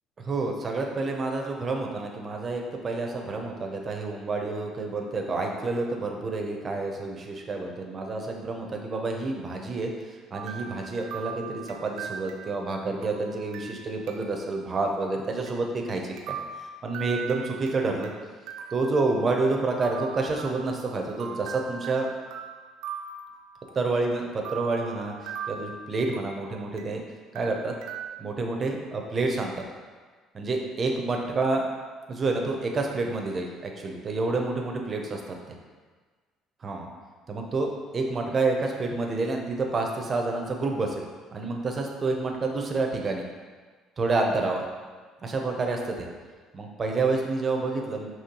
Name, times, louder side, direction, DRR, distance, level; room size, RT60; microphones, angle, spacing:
voice 1, 0.2-18.1 18.7-22.1 23.7-27.0 27.3-27.7 28.2-29.6 30.3-31.7 32.1-35.4 36.6-36.9 37.3-41.0 41.3-43.2 44.0-44.6 45.2-46.1 46.5-48.1, right 3 dB, 25° right, 2 dB, 0.5 m, -29 dB
sound 1, 10.3-14.5 14.8-14.9 15.5-15.6 16.2-18.1 18.5-19.5 19.8-24.0 24.5-27.0 27.4-28.1, right 7 dB, 90° right, 0.4 m, -40 dB
5.2 x 3.0 x 2.9 m, 1.5 s
cardioid pair, 170°, 0 cm